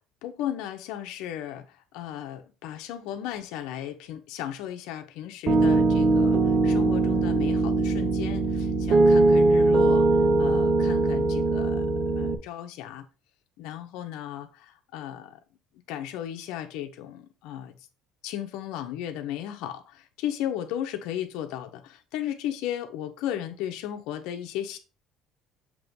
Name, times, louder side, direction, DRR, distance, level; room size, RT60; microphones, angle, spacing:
voice 1, 0.2-11.9 12.1-13.1 13.6-15.4 15.9-17.7 18.2-24.8, left 11 dB, 75° left, 1.1 m, -35 dB
Piano, 5.5-12.4, right 2 dB, 35° right, 1.2 m, -21 dB
7.6 x 3.2 x 5.3 m
cardioid pair, 140°, 0 cm